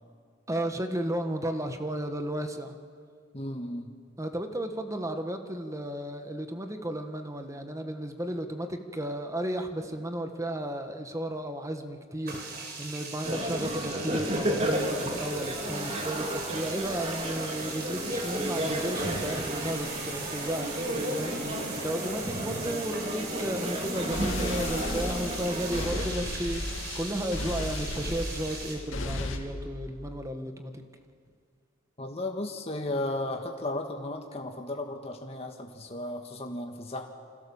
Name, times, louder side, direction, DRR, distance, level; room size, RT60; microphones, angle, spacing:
voice 1, 0.5-2.7 4.2-30.8, right 1 dB, 15° right, 6 dB, 1.6 m, -34 dB
voice 2, 3.3-3.9 13.2-13.4 32.0-37.1, left 1 dB, 30° left, 2 dB, 1.8 m, -35 dB
sound 1, 12.3-28.8, right 4 dB, 55° right, 5.5 m, -40 dB
sound 2, 13.2-26.1, right 1 dB, 30° right, 3.0 m, -33 dB
sound 3, 23.9-29.4, left 2 dB, 75° left, 2.6 m, -35 dB
28.5 x 26.0 x 7.3 m, 2.1 s
head